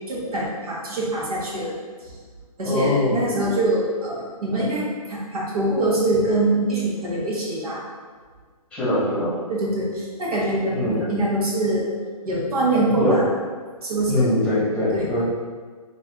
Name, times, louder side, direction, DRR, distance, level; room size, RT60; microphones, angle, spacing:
voice 1, 0.1-1.7 2.6-7.8 9.5-11.8 12.2-13.3 13.8-14.3 14.9-15.1, right 2 dB, 70° right, -4 dB, 1.4 m, -24 dB
voice 2, 2.6-3.2 8.7-9.3 10.7-11.0 13.0-13.2 14.1-15.2, left 1 dB, 5° left, -10 dB, 1.3 m, -22 dB
4.1 x 3.0 x 3.0 m, 1.5 s
hypercardioid pair, 155°, 19 cm